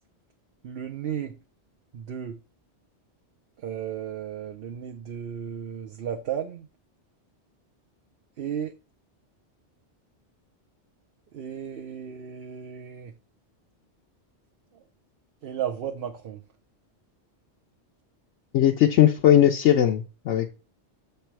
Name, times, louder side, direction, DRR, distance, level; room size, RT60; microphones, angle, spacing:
voice 1, 0.6-1.4 1.9-2.4 3.6-6.7 8.4-8.7 11.3-13.1 14.7-14.8 15.4-16.4, right 8 dB, 60° right, 0.8 m, -34 dB
voice 2, 18.5-20.5, left 11 dB, 80° left, 0.9 m, -19 dB
7.2 x 3.4 x 4.4 m
omnidirectional pair, 1.2 m